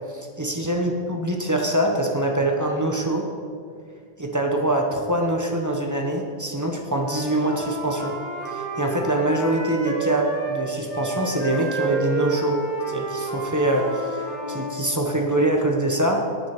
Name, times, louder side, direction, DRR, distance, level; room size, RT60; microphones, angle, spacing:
voice 1, 0.1-3.3 4.2-8.1 8.4-12.6 12.9-16.2, right 1 dB, 15° right, 1 dB, 1.0 m, -24 dB
Wind instrument woodwind instrument, 7.0-10.6 10.9-14.8, right 2 dB, 65° left, 3.7 m, -30 dB
9.1 x 8.4 x 5.9 m, 2.1 s
omnidirectional pair, 1.3 m